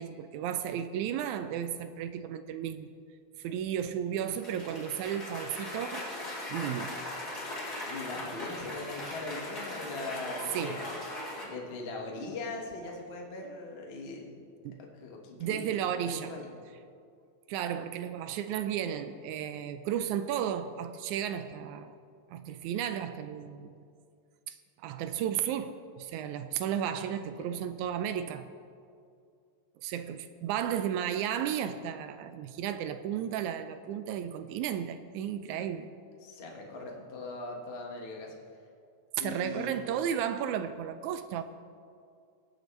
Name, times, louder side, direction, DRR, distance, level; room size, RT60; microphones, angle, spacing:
voice 1, 0.0-2.9 3.4-6.1 6.5-7.0 10.5-10.8 14.6-14.8 15.4-16.3 17.5-21.9 22.3-23.8 24.5-28.5 29.8-35.9 39.2-41.4, right 9 dB, 80° right, 10 dB, 1.7 m, -34 dB
Cheering / Applause, 4.3-11.4, left 1 dB, 25° left, 2.7 m, -39 dB
voice 2, 7.9-10.9 11.4-14.4 14.8-15.7 15.9-16.6 27.4-27.6 36.2-38.3 39.2-39.8, left 3 dB, 85° left, -1 dB, 0.5 m, -40 dB
23.0 x 7.8 x 3.2 m, 2.3 s
omnidirectional pair, 3.7 m